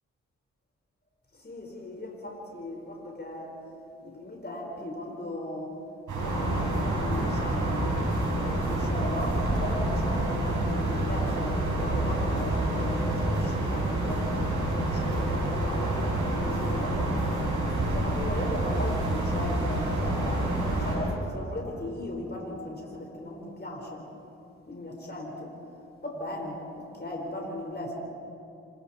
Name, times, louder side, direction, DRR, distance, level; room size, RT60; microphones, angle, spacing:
voice 1, 1.3-3.6 4.0-5.7 6.1-8.0 8.3-14.4 14.7-17.2 17.9-24.1 24.7-25.6 26.0-28.0, left 1 dB, 35° left, 0 dB, 5.1 m, -37 dB
sound 1, 6.1-21.0, right 1 dB, 90° right, 5.8 m, -28 dB
27.0 x 25.5 x 4.5 m, 2.7 s
supercardioid pair, 40°, 30 cm